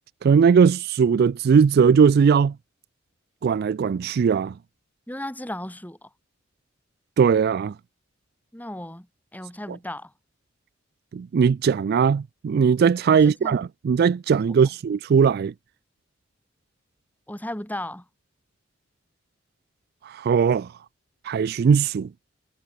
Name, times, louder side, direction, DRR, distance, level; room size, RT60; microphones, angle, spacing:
voice 1, 0.2-2.5 3.4-4.5 7.2-7.7 11.1-15.5 20.0-20.7 21.2-22.1, right 6 dB, 55° right, 0.3 m, -19 dB
voice 2, 5.1-6.1 8.5-9.1 9.3-10.1 13.2-13.6 17.3-18.0, left 1 dB, 10° left, 4.3 m, -35 dB
head